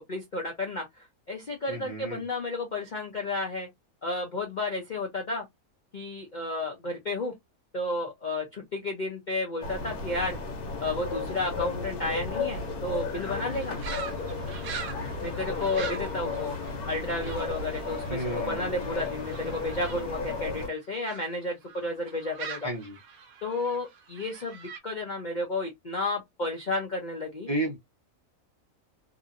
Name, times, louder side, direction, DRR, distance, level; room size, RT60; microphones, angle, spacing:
voice 1, 0.0-3.7 4.0-5.4 5.9-7.4 7.7-10.4 10.8-13.8 15.2-16.6 16.9-22.7 23.4-27.5, left 2 dB, 50° left, 0.5 m, -32 dB
voice 2, 1.7-2.2 18.1-18.8 22.6-23.0 27.5-27.8, right 1 dB, 35° right, 0.7 m, -32 dB
sound 1, 9.6-20.7, left 3 dB, 85° left, 1.3 m, -34 dB
sound 2, 13.2-21.3 21.6-24.8, right 6 dB, 75° right, 1.2 m, -43 dB
2.8 x 2.6 x 2.5 m
omnidirectional pair, 1.6 m